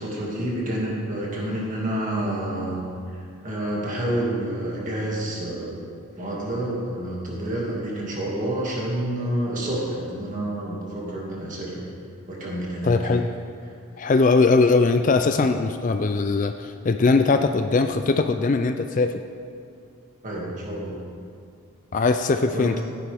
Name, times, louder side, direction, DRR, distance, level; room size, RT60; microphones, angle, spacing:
voice 1, 0.0-2.8 3.1-5.9 6.2-11.9 12.3-13.1 20.2-21.0 22.5-22.7, right 1 dB, 35° right, -4 dB, 2.2 m, -29 dB
voice 2, 12.8-13.3 14.0-19.2 21.9-22.8, left 3 dB, 35° left, 7 dB, 0.3 m, -20 dB
14.0 x 9.9 x 3.5 m, 2.3 s
head